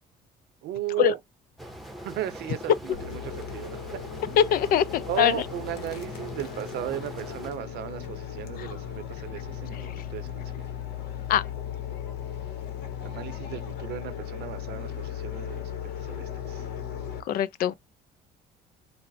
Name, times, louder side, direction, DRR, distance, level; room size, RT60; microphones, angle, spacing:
voice 1, 0.6-1.2 2.0-4.0 5.0-10.7 13.0-16.7, right 13 dB, 75° right, 0.7 m, -36 dB
sound 1, 1.6-7.5, right 1 dB, ahead, 0.8 m, -42 dB
sound 2, 2.9-17.2, left 9 dB, 75° left, 0.9 m, -37 dB
voice 2, 4.4-5.4 8.6-8.7 9.7-9.9 11.3-11.4 17.3-17.7, left 10 dB, 60° left, 0.4 m, -23 dB
3.9 x 2.0 x 2.5 m
cardioid pair, 110°, 17 cm